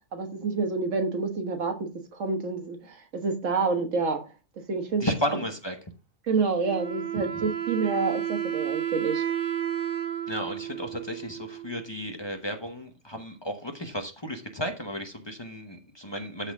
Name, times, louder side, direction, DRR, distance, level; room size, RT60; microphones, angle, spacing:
voice 1, 0.1-4.2 4.7-5.0 6.3-9.2, right 4 dB, 75° right, 1.6 m, -28 dB
voice 2, 5.0-5.7 7.1-7.2 10.3-16.5, equal, 20° left, 1.0 m, -33 dB
Wind instrument woodwind instrument, 6.6-12.1, right 10 dB, 50° right, 1.2 m, -32 dB
13.0 x 4.4 x 3.5 m
omnidirectional pair, 1.3 m